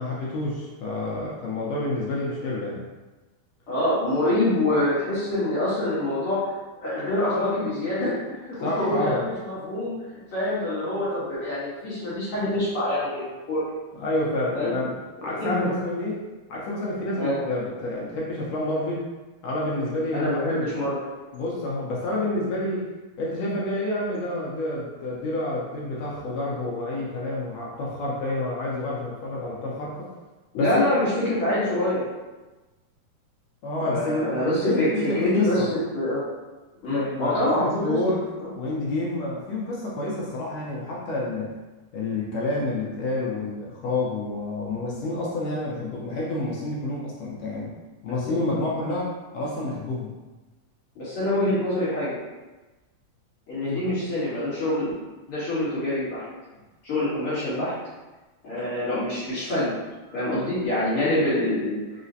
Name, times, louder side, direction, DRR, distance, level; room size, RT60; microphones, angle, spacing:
voice 1, 0.0-2.8 8.5-9.3 14.0-16.2 16.5-19.1 19.4-20.8 21.3-22.9 23.2-30.1 30.6-30.9 33.6-35.7 36.9-38.2 38.5-41.5 41.9-47.7 48.0-50.1 53.6-53.9, left 2 dB, 75° left, -5 dB, 1.7 m, -29 dB
voice 2, 3.7-6.4 6.8-8.2 8.4-9.9 10.3-13.6 14.5-14.7 15.3-15.7 17.1-17.4 20.1-21.0 30.5-32.0 33.9-36.2 36.8-37.9 38.4-38.5 48.2-48.6 50.9-52.2 53.5-54.9 55.3-56.2 56.8-57.7 58.4-59.7 60.1-61.8, left 1 dB, 55° left, -11 dB, 1.6 m, -25 dB
4.8 x 2.1 x 2.6 m, 1.2 s
omnidirectional pair, 3.3 m